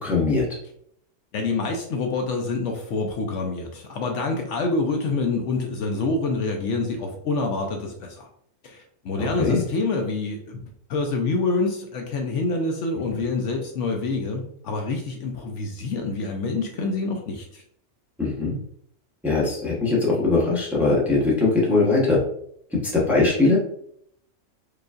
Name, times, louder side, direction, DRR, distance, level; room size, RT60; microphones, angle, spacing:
voice 1, 0.0-0.5 9.2-9.6 18.2-18.6 19.2-22.2 22.8-23.6, left 3 dB, ahead, -5 dB, 0.7 m, -21 dB
voice 2, 1.3-8.3 8.6-10.6 10.9-17.6, left 3 dB, 70° left, 2 dB, 0.8 m, -26 dB
4.7 x 2.5 x 2.4 m, 0.68 s
omnidirectional pair, 1.4 m